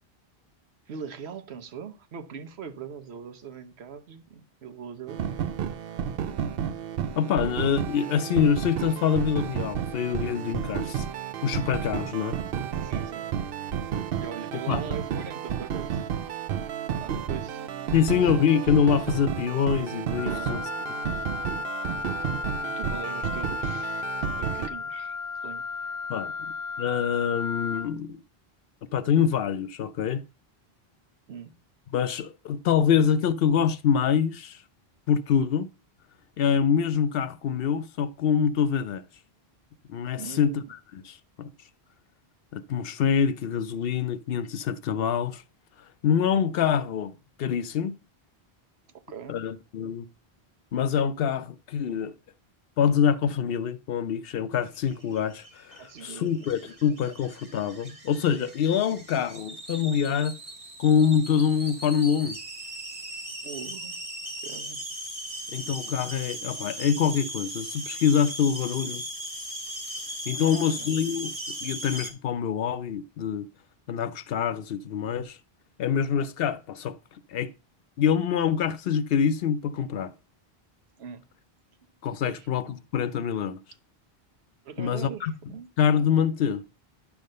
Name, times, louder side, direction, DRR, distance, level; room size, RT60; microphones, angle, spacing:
voice 1, 0.9-5.2 12.8-13.4 14.2-16.0 16.3-16.5 17.0-17.6 20.2-20.7 22.6-24.1 24.4-26.4 31.3-31.5 40.1-40.7 48.9-49.4 55.7-56.7 63.4-64.0 64.4-65.1 70.4-71.0 81.0-81.3 82.2-82.5 84.6-85.7, right 7 dB, 85° right, 1.1 m, -41 dB
sound 1, 5.1-24.7, right 8 dB, 70° right, 0.8 m, -32 dB
voice 2, 7.2-11.1 11.4-12.4 14.5-14.8 17.9-20.6 26.1-26.3 26.8-28.2 28.9-30.2 31.9-34.6 35.1-35.7 36.4-39.0 39.9-40.6 40.9-41.5 42.5-45.4 46.0-47.1 47.4-48.0 49.3-50.1 50.7-52.1 52.8-60.4 60.8-62.4 65.5-69.0 70.3-73.5 73.9-75.4 75.8-77.0 77.3-77.5 78.0-80.1 82.0-83.6 84.8-85.3 85.8-86.6, left 7 dB, 70° left, 0.8 m, -25 dB
Wind instrument woodwind instrument, 20.2-27.9, left 5 dB, 40° left, 0.7 m, -34 dB
sound 2, 54.8-72.1, right 1 dB, 35° right, 1.4 m, -38 dB
10.0 x 3.5 x 6.5 m
omnidirectional pair, 1.0 m